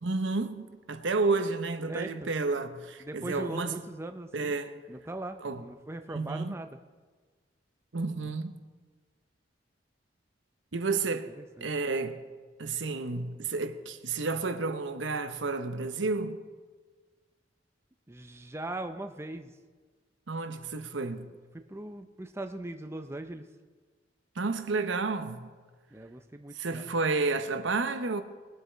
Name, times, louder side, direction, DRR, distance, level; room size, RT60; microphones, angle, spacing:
voice 1, 0.0-3.7 4.3-4.8 5.4-5.6 6.1-6.5 7.9-8.6 10.7-11.3 11.6-12.2 12.6-16.4 20.3-21.3 24.4-25.5 26.5-28.2, right 3 dB, 80° right, 0.9 m, -31 dB
voice 2, 1.8-2.3 3.0-4.5 4.9-6.8 11.4-11.7 18.1-19.5 21.5-23.4 25.9-26.8, right 2 dB, 15° right, 0.5 m, -40 dB
20.5 x 8.0 x 4.5 m
head